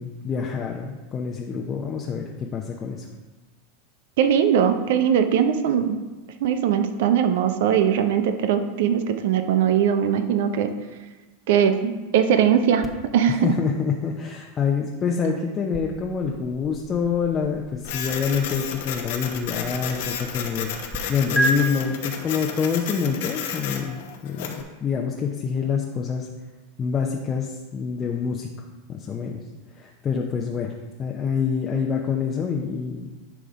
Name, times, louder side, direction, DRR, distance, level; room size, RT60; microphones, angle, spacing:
voice 1, 0.0-3.1 13.3-26.3 26.8-28.5 28.9-29.4 29.7-30.7 31.0-33.1, left 6 dB, 30° left, 0 dB, 0.8 m, -26 dB
voice 2, 4.2-6.0 6.4-10.7 11.5-13.5, right 8 dB, 65° right, 9 dB, 0.7 m, -20 dB
sound 1, 12.8-21.0 21.4-21.5, right 2 dB, 5° right, 1.0 m, -34 dB
Printer, 17.8-24.6, left 7 dB, 65° left, 1.0 m, -32 dB
10.0 x 3.8 x 5.0 m, 1.3 s
hypercardioid pair, 90°, 0 cm